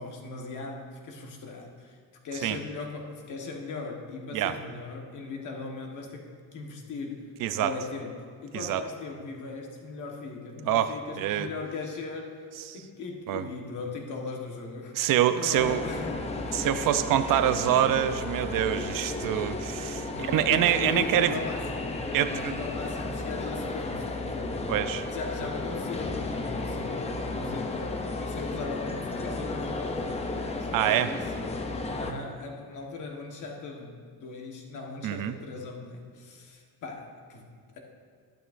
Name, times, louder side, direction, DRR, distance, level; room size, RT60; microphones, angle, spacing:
voice 1, 0.0-2.0 2.2-7.3 7.5-12.5 12.7-16.7 20.1-21.9 22.2-24.8 25.1-30.3 30.6-31.3 31.6-37.8, left 4 dB, 50° left, 1 dB, 1.3 m, -39 dB
voice 2, 7.4-7.7 8.5-8.8 10.7-11.5 13.3-13.4 14.9-15.8 16.5-21.4 22.1-22.5 24.7-25.0 30.7-31.1 35.0-35.4, right 11 dB, 60° right, 11 dB, 0.5 m, -25 dB
sound 1, 15.5-32.1, left 2 dB, 15° left, 0.5 m, -33 dB
12.0 x 11.0 x 2.5 m, 2.1 s
cardioid pair, 165°, 39 cm